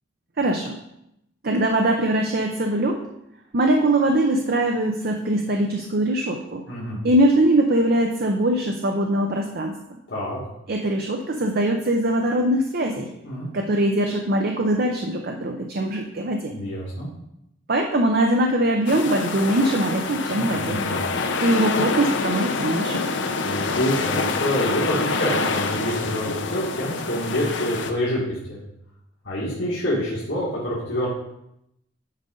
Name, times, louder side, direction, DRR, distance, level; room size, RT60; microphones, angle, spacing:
voice 1, 0.4-0.8 1.4-3.0 3.5-6.6 7.0-9.7 10.7-13.1 13.5-16.5 17.7-20.8 21.4-23.0, right 1 dB, 55° right, 3 dB, 0.7 m, -22 dB
voice 2, 6.7-7.0 10.1-10.4 13.2-13.5 16.5-17.1 20.3-21.0 23.4-28.6 29.2-31.1, equal, 85° left, -8 dB, 1.9 m, -27 dB
sound 1, 18.9-27.9, left 4 dB, 65° left, 0.7 m, -26 dB
9.6 x 5.1 x 3.8 m, 0.82 s
head